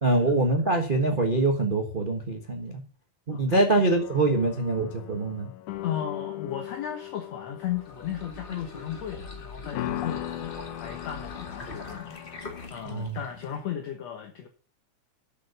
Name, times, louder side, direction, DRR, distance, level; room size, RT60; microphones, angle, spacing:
voice 1, 0.0-2.8 3.3-5.5 12.8-13.2, right 2 dB, 80° right, 3 dB, 0.4 m, -24 dB
voice 2, 3.3-3.6 5.8-10.5 10.8-14.5, left 9 dB, 65° left, 4 dB, 2.2 m, -35 dB
sound 1, 3.9-12.7, left 14 dB, 80° left, 2.3 m, -39 dB
sound 2, 7.6-13.7, left 3 dB, 25° left, 1.1 m, -43 dB
7.7 x 7.5 x 8.1 m, 0.38 s
omnidirectional pair, 3.5 m